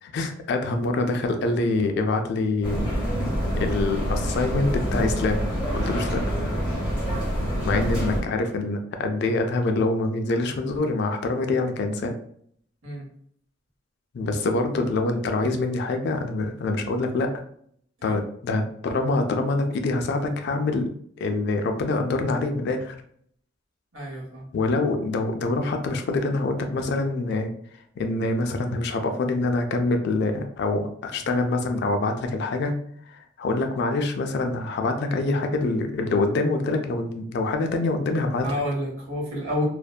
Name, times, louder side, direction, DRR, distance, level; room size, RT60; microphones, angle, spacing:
voice 1, 0.0-2.9 3.6-5.5 5.7-6.2 7.6-12.1 14.1-17.3 18.0-20.9 21.2-23.0 24.5-27.5 28.0-32.7 33.1-38.5, left 2 dB, 60° left, 5 dB, 0.3 m, -25 dB
sound 1, 2.6-8.2, equal, 5° right, 1.2 m, -26 dB
voice 2, 23.9-24.6 38.4-39.6, left 1 dB, 85° right, -3 dB, 1.0 m, -29 dB
2.6 x 2.1 x 2.3 m, 0.64 s
head